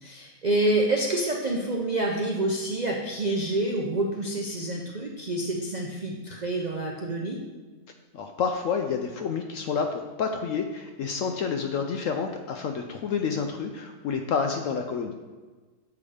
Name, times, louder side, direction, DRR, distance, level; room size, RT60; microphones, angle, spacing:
voice 1, 0.0-7.4, right 2 dB, 60° right, -1 dB, 0.4 m, -27 dB
voice 2, 8.1-15.1, left 6 dB, 70° left, 4 dB, 0.8 m, -29 dB
7.2 x 4.7 x 4.9 m, 1.3 s
omnidirectional pair, 1.7 m